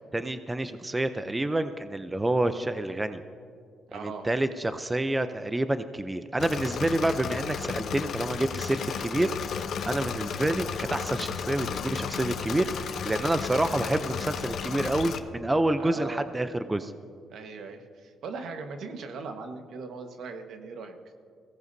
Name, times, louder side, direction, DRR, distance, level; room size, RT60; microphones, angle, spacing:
voice 1, 0.1-3.2 3.9-9.3 9.8-16.9, right 1 dB, 15° right, 10 dB, 0.6 m, -28 dB
voice 2, 3.9-4.3 15.8-16.2 17.3-21.0, right 4 dB, 70° right, 5 dB, 1.4 m, -39 dB
Engine / Mechanisms, 6.4-15.2, left 7 dB, 65° left, 0.8 m, -33 dB
22.0 x 17.0 x 2.7 m, 2.2 s
cardioid pair, 90°, 0 cm